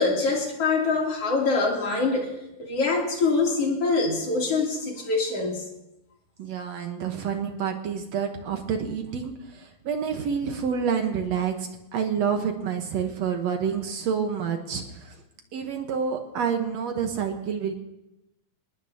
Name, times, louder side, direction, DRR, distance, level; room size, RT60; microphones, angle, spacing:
voice 1, 0.0-2.3 2.6-5.6, left 3 dB, 50° left, -2 dB, 3.9 m, -24 dB
voice 2, 6.4-15.2 15.5-17.7, right 7 dB, 65° right, 5 dB, 2.2 m, -28 dB
25.5 x 19.5 x 2.8 m, 0.90 s
omnidirectional pair, 3.5 m